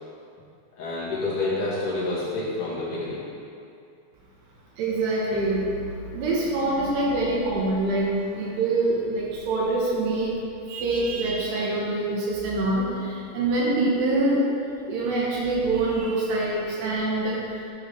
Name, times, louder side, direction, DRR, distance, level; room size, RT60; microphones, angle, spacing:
voice 1, 0.8-3.2, left 2 dB, 55° left, -9 dB, 2.7 m, -28 dB
voice 2, 4.8-10.3 10.7-14.5 14.9-17.4, right 2 dB, 75° right, -4 dB, 2.8 m, -25 dB
11.0 x 4.8 x 3.7 m, 2.5 s
omnidirectional pair, 5.3 m